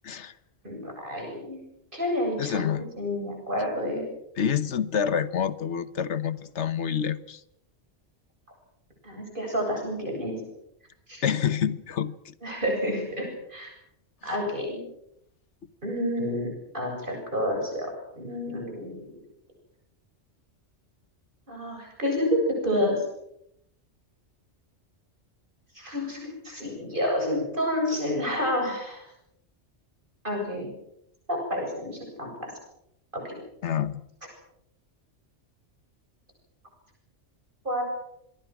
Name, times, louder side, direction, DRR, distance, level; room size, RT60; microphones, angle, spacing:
voice 1, 0.6-1.6 1.9-4.0 9.0-10.3 11.1-11.2 12.4-13.7 14.2-14.8 15.8-19.1 21.5-23.0 25.7-29.1 30.2-30.7 31.3-32.5 33.2-33.3 37.6-37.8, left 1 dB, 45° right, 8.3 m, -29 dB
voice 2, 2.4-2.9 4.4-7.4 11.2-12.3 33.6-34.0, left 8 dB, 70° left, 1.4 m, -27 dB
26.5 x 23.0 x 6.2 m
omnidirectional pair, 1.2 m